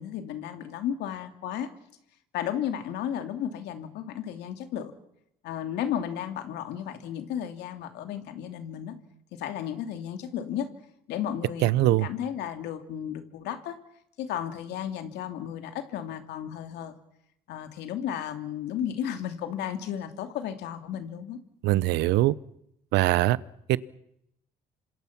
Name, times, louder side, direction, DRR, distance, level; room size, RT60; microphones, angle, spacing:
voice 1, 0.0-1.7 2.3-4.9 5.4-8.9 9.3-10.7 11.1-13.8 14.2-16.9 17.5-21.4 21.7-21.9, left 9 dB, 80° left, 7 dB, 2.8 m, -34 dB
voice 2, 11.6-12.1 21.6-22.3 22.9-23.4 23.7-23.8, right 17 dB, 85° right, 19 dB, 0.9 m, -22 dB
27.0 x 26.0 x 6.0 m, 0.79 s
cardioid pair, 110°, 17 cm